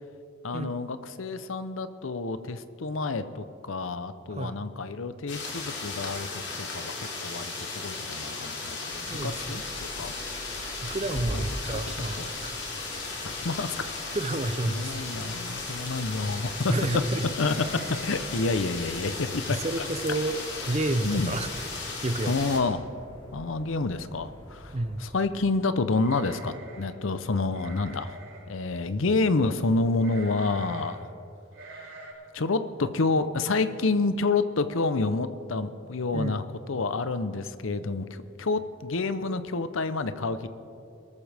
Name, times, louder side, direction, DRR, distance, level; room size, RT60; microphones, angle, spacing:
voice 1, 0.4-9.6 10.0-10.1 11.3-11.4 11.7-12.3 13.2-13.8 14.4-17.0 17.4-20.4 21.0-21.3 22.2-22.9 23.3-28.2 28.5-31.0 32.3-38.0 38.4-40.5, left 3 dB, 80° left, 12 dB, 0.7 m, -29 dB
sound 1, 5.3-22.6, left 3 dB, 60° left, 3.0 m, -36 dB
Outside my bedroom homemade wind filter, 8.9-25.1, equal, 25° left, 4.3 m, -45 dB
voice 2, 9.1-9.7 10.8-12.6 14.1-14.9 16.7-17.3 19.5-20.4 20.7-21.5 22.0-22.3 24.7-25.1 36.1-36.4, right 2 dB, 30° right, 11 dB, 0.6 m, -30 dB
sound 2, 17.4-18.4 18.6-18.7 19.2-19.5 20.0-20.1 20.4-20.9 21.2-21.3 22.5-22.6 22.9-23.3 25.9-27.0 27.5-28.5 30.0-31.0 31.5-32.1, right 2 dB, 90° right, 4.1 m, -45 dB
23.0 x 13.5 x 3.5 m, 2.7 s
head